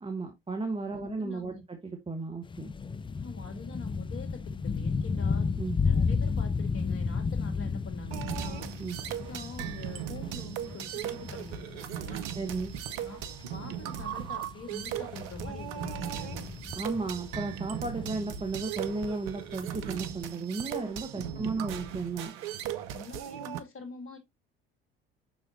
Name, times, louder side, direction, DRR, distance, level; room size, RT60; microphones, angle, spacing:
voice 1, 0.0-1.8 2.1-2.7 5.6-5.8 8.8-9.0 12.3-12.7 16.8-22.3, right 3 dB, 20° right, 1.6 m, -34 dB
voice 2, 0.9-1.6 3.2-5.5 5.8-8.7 9.2-12.2 13.0-13.2 13.5-16.5 21.2-21.5 22.9-24.2, left 3 dB, 45° left, 2.9 m, -44 dB
sound 1, 2.4-20.0 20.2-20.3, left 5 dB, 15° left, 0.5 m, -33 dB
sound 2, 8.1-23.6, right 10 dB, 70° right, 0.8 m, -38 dB
7.3 x 6.1 x 2.6 m
hypercardioid pair, 60°, 30 cm